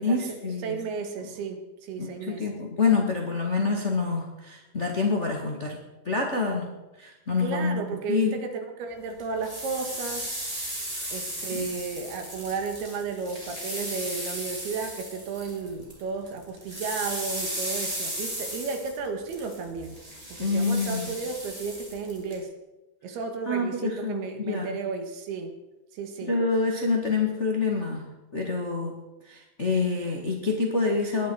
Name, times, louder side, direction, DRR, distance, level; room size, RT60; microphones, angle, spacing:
voice 1, 0.0-0.8 2.0-5.8 6.0-6.7 7.0-7.8 8.1-8.3 11.0-11.1 11.5-11.7 20.4-21.1 23.5-24.7 26.3-28.0 28.3-29.0 29.3-31.3, left 4 dB, 65° left, 0 dB, 0.7 m, -27 dB
voice 2, 0.6-2.5 7.4-10.4 11.1-20.0 20.3-22.5 23.0-25.5 25.9-26.3, right 4 dB, 75° right, 5 dB, 3.5 m, -33 dB
sound 1, 9.2-16.0 16.3-22.4, right 1 dB, 10° right, 3.9 m, -35 dB
20.0 x 11.5 x 4.8 m, 1.0 s
omnidirectional pair, 4.8 m